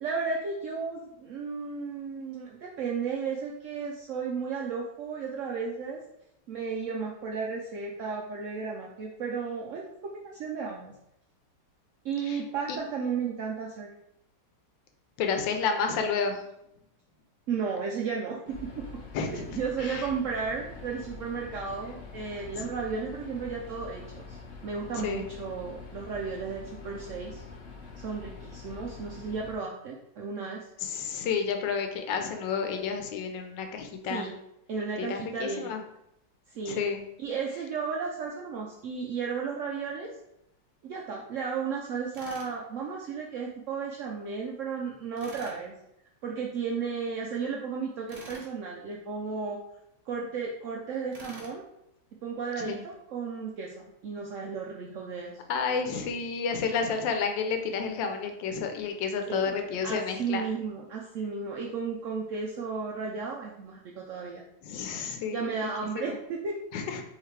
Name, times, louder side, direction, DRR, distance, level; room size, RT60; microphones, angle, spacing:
voice 1, 0.0-6.0 6.5-10.9 12.0-13.9 17.5-18.8 19.3-24.4 24.6-27.4 28.0-30.7 34.1-34.3 34.7-35.7 36.5-36.8 37.2-40.1 40.8-45.7 46.2-49.6 50.1-51.6 52.2-55.3 59.3-59.5 59.8-64.4 65.3-66.6, right 5 dB, 80° right, -1 dB, 0.6 m, -34 dB
voice 2, 15.2-16.4 19.1-19.4 19.8-20.1 22.5-22.7 25.0-25.3 30.8-34.3 35.0-35.8 36.7-37.0 52.6-52.8 55.5-60.4 64.6-65.7 66.0-66.2 66.7-67.0, left 5 dB, 90° left, 5 dB, 1.4 m, -31 dB
sound 1, 18.5-29.6, left 4 dB, 55° left, 0.9 m, -45 dB
Tools, 42.1-42.5 45.2-45.6 48.1-48.5 51.1-51.6, right 1 dB, 40° right, 0.5 m, -46 dB
4.8 x 3.2 x 3.2 m, 0.80 s
omnidirectional pair, 1.9 m